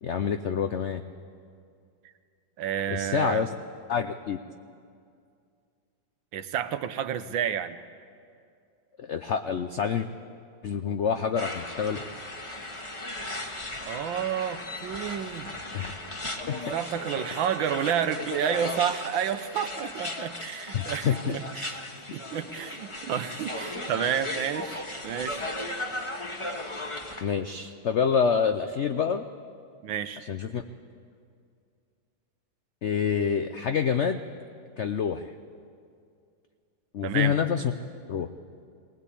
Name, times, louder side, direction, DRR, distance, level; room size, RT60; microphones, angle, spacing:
voice 1, 0.0-1.0 2.9-3.5 3.9-4.4 9.0-10.1 10.6-12.0 15.7-15.9 16.5-16.7 20.7-21.4 27.2-29.3 30.2-30.6 32.8-34.2 34.8-35.3 36.9-37.7 38.1-38.3, left 7 dB, 85° left, 8 dB, 0.6 m, -27 dB
voice 2, 2.6-3.4 6.3-7.8 13.8-15.5 16.7-21.7 22.1-25.4 29.8-30.2 37.0-37.4, right 9 dB, 80° right, 11 dB, 1.6 m, -30 dB
sound 1, 11.4-27.2, left 1 dB, 20° left, 1.2 m, -36 dB
19.5 x 19.5 x 8.4 m, 2.3 s
omnidirectional pair, 2.1 m